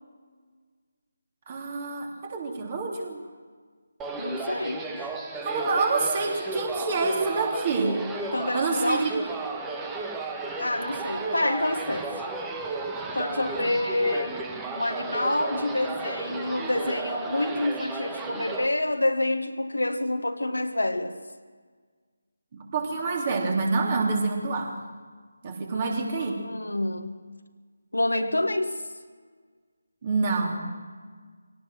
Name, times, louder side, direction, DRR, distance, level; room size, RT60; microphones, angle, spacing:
voice 1, 1.5-3.2 5.4-8.0 8.5-9.1 13.6-13.7 22.5-24.8 25.4-26.4 30.0-30.6, right 3 dB, 30° right, 1 dB, 3.3 m, -27 dB
sound 1, 4.0-18.7, right 3 dB, 10° right, 1.4 m, -34 dB
voice 2, 4.2-5.1 8.3-9.1 10.6-12.1 13.1-14.4 14.7-21.2 25.7-27.2 27.9-28.8, left 1 dB, 75° left, 7 dB, 1.7 m, -28 dB
23.0 x 18.0 x 6.3 m, 1.6 s
figure-of-eight pair, 155°, 0 cm